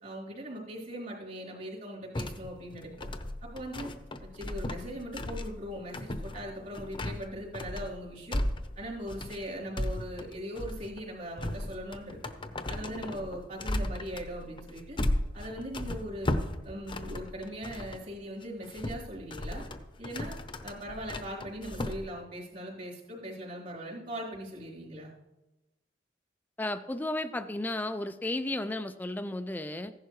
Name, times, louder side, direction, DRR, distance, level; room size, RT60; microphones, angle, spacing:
voice 1, 0.0-3.1 3.4-3.9 4.2-8.4 8.8-12.2 12.7-15.0 15.3-16.3 16.6-19.6 20.0-20.4 20.6-25.1, equal, 50° right, -5 dB, 3.7 m, -40 dB
sound 1, 2.1-18.0 18.4-22.0, left 1 dB, 30° left, 0.7 m, -36 dB
voice 2, 26.6-29.9, left 1 dB, 10° left, 10 dB, 0.3 m, -33 dB
15.0 x 11.0 x 3.2 m, 1.0 s
head